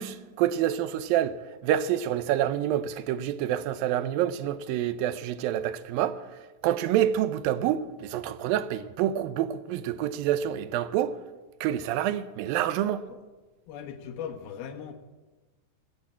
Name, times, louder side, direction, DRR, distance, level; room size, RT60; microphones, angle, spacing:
voice 1, 0.0-6.2 6.6-11.2 11.6-13.0, right 11 dB, 80° right, 2.5 m, -27 dB
voice 2, 13.7-14.9, left 8 dB, 90° left, 3.1 m, -39 dB
20.5 x 8.3 x 8.5 m
omnidirectional pair, 4.2 m